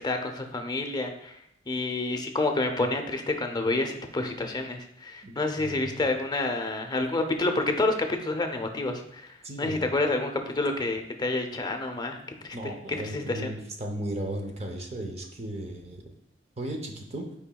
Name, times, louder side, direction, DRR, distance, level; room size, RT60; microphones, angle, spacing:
voice 1, 0.0-7.9 8.2-12.2 12.4-13.5, left 2 dB, 25° left, 5 dB, 0.6 m, -29 dB
voice 2, 5.2-6.0 9.4-9.9 12.5-16.0 16.6-17.3, right 1 dB, 35° right, 2 dB, 0.7 m, -36 dB
8.5 x 4.9 x 2.3 m, 0.75 s
head